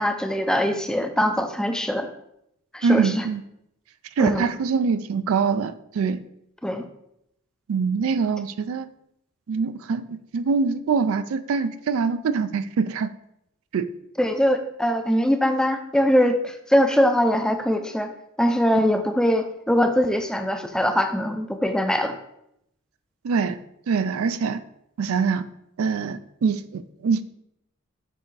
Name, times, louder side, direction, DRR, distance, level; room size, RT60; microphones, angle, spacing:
voice 1, 0.0-2.1 2.7-3.3 4.2-4.5 6.6-6.8 14.2-18.1 18.4-22.1, equal, 5° left, 7 dB, 0.4 m, -22 dB
voice 2, 2.8-3.4 4.2-6.2 7.7-8.9 9.5-13.1 13.7-13.9 23.2-23.6 23.9-24.6 25.0-25.5 25.8-27.2, right 5 dB, 70° right, 13 dB, 0.4 m, -24 dB
6.8 x 3.4 x 4.7 m, 0.78 s
head